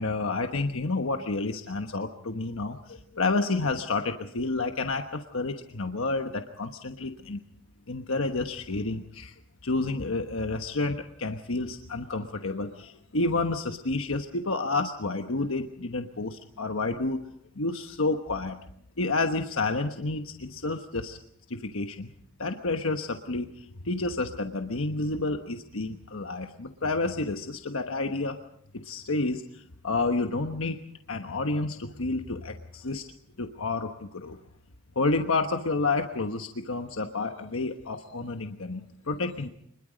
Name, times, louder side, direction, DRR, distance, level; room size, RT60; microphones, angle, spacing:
voice 1, 0.0-7.4 7.9-9.3 9.6-17.2 17.5-18.6 19.0-21.2 21.5-22.1 22.4-28.4 28.7-30.8 31.1-33.0 33.4-34.4 34.9-39.5, left 3 dB, 80° left, 5 dB, 1.2 m, -30 dB
25.5 x 21.5 x 5.2 m, 0.73 s
head